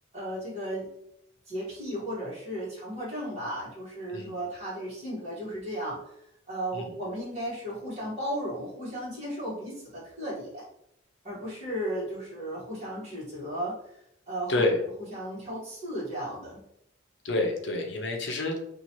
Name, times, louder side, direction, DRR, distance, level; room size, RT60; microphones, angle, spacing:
voice 1, 0.1-0.9 1.5-6.0 6.5-10.6 11.2-13.7 14.3-14.6 15.1-16.6, equal, 35° right, -9 dB, 1.3 m, -35 dB
voice 2, 14.5-14.8 17.2-18.7, left 2 dB, 65° left, 3 dB, 0.6 m, -28 dB
2.9 x 2.4 x 2.9 m, 0.76 s
head